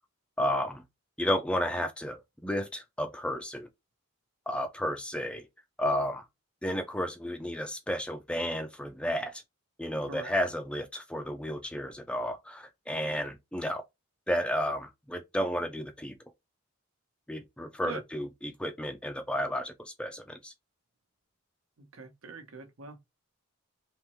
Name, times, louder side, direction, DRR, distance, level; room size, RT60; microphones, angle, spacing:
voice 1, 0.4-0.8 1.2-3.7 4.5-5.5 5.8-6.2 6.6-9.4 9.8-13.8 14.3-16.2 17.3-20.5, equal, 5° left, 0.4 m, -32 dB
voice 2, 21.8-23.0, right 4 dB, 75° right, 0.9 m, -43 dB
3.4 x 3.0 x 3.0 m
head